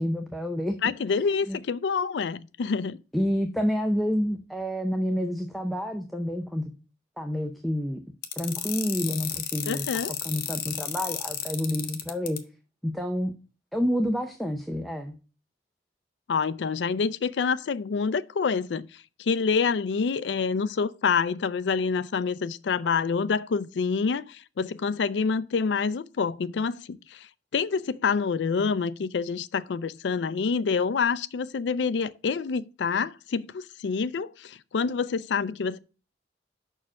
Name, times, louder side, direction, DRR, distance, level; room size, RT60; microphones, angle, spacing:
voice 1, 0.0-0.8 1.5-1.6 3.1-6.7 7.2-8.0 8.4-9.9 10.2-12.4 12.8-13.3 13.7-15.1, equal, ahead, 0.6 m, -28 dB
voice 2, 0.8-3.0 9.6-10.1 16.3-18.9 19.2-27.3 27.5-35.8, left 5 dB, 80° left, 0.4 m, -27 dB
sound 1, 8.2-12.4, left 11 dB, 55° left, 0.8 m, -32 dB
5.8 x 4.5 x 6.1 m
head